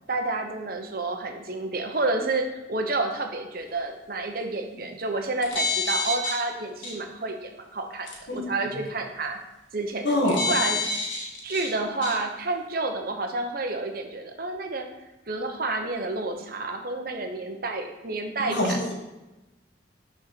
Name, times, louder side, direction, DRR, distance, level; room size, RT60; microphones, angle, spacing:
voice 1, 0.1-9.4 9.7-10.8 11.4-14.9 15.3-18.8, right 2 dB, 50° right, 4 dB, 0.8 m, -30 dB
sound 1, 5.3-6.4 6.8-6.9 8.1-8.2 10.3-11.7 12.0-12.1, left 3 dB, 90° left, 1.7 m, -27 dB
voice 2, 10.0-10.5 18.5-19.0, left 1 dB, 65° left, -1 dB, 1.7 m, -25 dB
6.5 x 4.3 x 6.0 m, 1.0 s
head